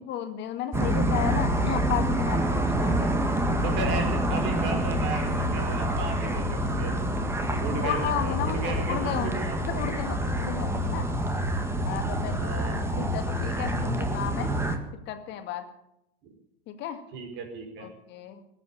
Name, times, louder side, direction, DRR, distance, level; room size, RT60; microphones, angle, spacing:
voice 1, 0.0-3.1 7.2-9.4 9.7-11.1 11.8-14.5 14.9-15.7 16.7-17.0 17.8-18.4, left 10 dB, 35° left, 8 dB, 2.1 m, -34 dB
sound 1, 0.7-14.8, right 1 dB, 10° right, 1.9 m, -27 dB
voice 2, 3.6-7.0 7.6-10.0 12.4-12.8 16.2-16.3 17.1-17.9, right 4 dB, 35° right, 4 dB, 4.9 m, -36 dB
20.0 x 8.3 x 8.5 m, 0.81 s
figure-of-eight pair, 90°, 30 cm